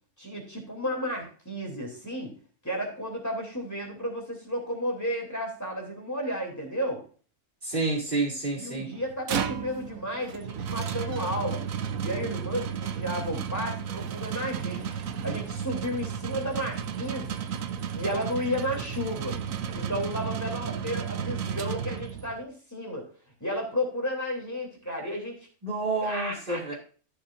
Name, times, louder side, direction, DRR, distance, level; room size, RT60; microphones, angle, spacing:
voice 1, 0.2-2.3 2.6-7.0 8.6-11.6 12.0-15.0 15.2-17.5 17.9-19.4 19.7-23.1 23.4-25.4 26.0-26.7, equal, 10° left, 1 dB, 3.1 m, -33 dB
voice 2, 7.6-8.9 25.6-26.7, right 3 dB, 40° right, -2 dB, 3.4 m, -29 dB
sound 1, 9.0-22.4, right 7 dB, 75° right, 1.2 m, -33 dB
13.5 x 7.0 x 2.6 m, 0.39 s
omnidirectional pair, 1.4 m